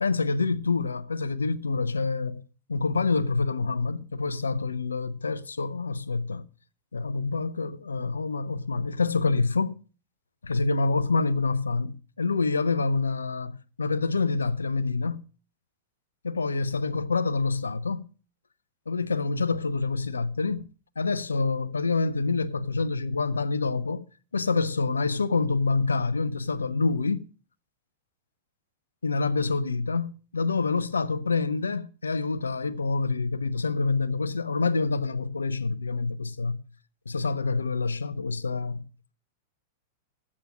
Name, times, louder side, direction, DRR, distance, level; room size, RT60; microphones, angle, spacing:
voice 1, 0.0-2.4 2.7-6.5 6.9-9.8 10.4-15.2 16.2-18.0 18.9-20.7 21.0-24.0 24.3-27.3 29.0-36.6 37.1-38.8, left 4 dB, 75° left, 0.6 m, -27 dB
11.5 x 8.5 x 6.3 m
figure-of-eight pair, 95°, 0 cm